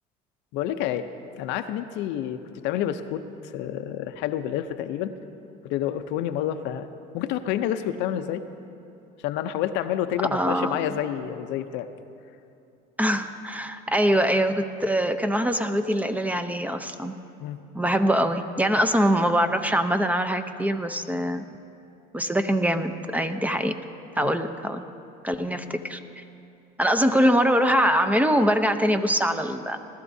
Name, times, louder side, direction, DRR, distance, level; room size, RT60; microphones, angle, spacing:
voice 1, 0.5-1.1 1.4-3.2 3.5-5.1 5.6-6.9 7.1-8.4 9.2-11.9 17.4-17.6 24.2-24.3, left 11 dB, 70° left, 9 dB, 0.7 m, -28 dB
voice 2, 10.3-10.8 13.0-17.1 17.7-21.4 22.1-23.8 24.2-24.8 25.2-26.2 26.8-29.8, equal, 10° right, 8 dB, 0.7 m, -23 dB
19.5 x 13.0 x 2.7 m, 2.7 s
supercardioid pair, 90°, 19 cm